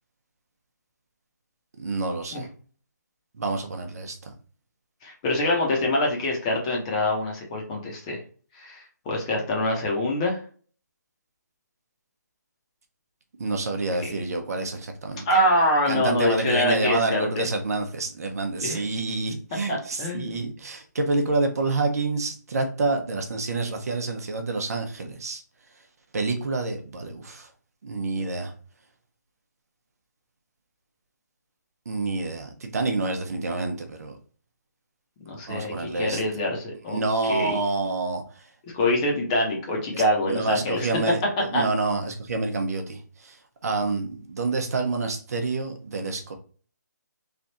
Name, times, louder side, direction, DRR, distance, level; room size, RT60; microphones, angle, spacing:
voice 1, 1.8-2.5 3.4-4.3 13.4-15.2 15.9-25.4 26.1-27.5 27.8-28.5 31.9-34.2 35.5-36.2 36.9-38.2 39.9-40.0 40.3-43.4 43.6-46.3, right 3 dB, 55° right, 5 dB, 0.8 m, -28 dB
voice 2, 5.0-8.2 8.5-10.4 14.0-14.2 15.3-17.4 18.6-18.8 19.7-20.4 35.2-37.6 38.7-40.9 41.4-41.6, left 1 dB, 20° left, 0 dB, 0.9 m, -25 dB
3.4 x 2.4 x 4.0 m, 0.42 s
hypercardioid pair, 165°, 10 cm